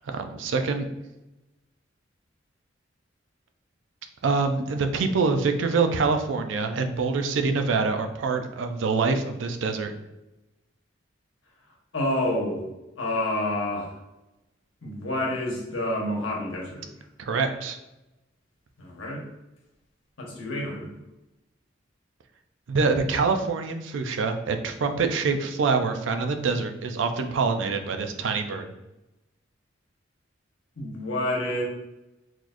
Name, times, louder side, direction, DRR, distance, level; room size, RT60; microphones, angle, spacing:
voice 1, 0.0-0.9 4.2-9.9 17.2-17.8 22.7-28.7, right 4 dB, 70° right, 6 dB, 0.4 m, -25 dB
voice 2, 11.9-12.7 13.0-14.0 14.8-16.9 18.8-19.2 20.2-20.9 30.8-31.6, left 1 dB, 85° left, -2 dB, 1.1 m, -28 dB
4.0 x 3.0 x 2.5 m, 0.96 s
head